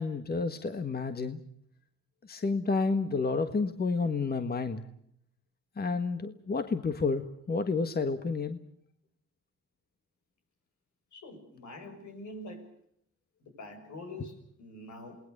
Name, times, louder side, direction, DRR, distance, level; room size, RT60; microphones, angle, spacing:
voice 1, 0.0-1.4 2.2-4.9 5.8-8.6, left 4 dB, 30° left, 8 dB, 1.6 m, -30 dB
voice 2, 11.1-12.7 13.6-15.2, left 1 dB, 75° left, 5 dB, 6.7 m, -45 dB
28.5 x 20.0 x 6.8 m, 0.69 s
cardioid pair, 90°, 30 cm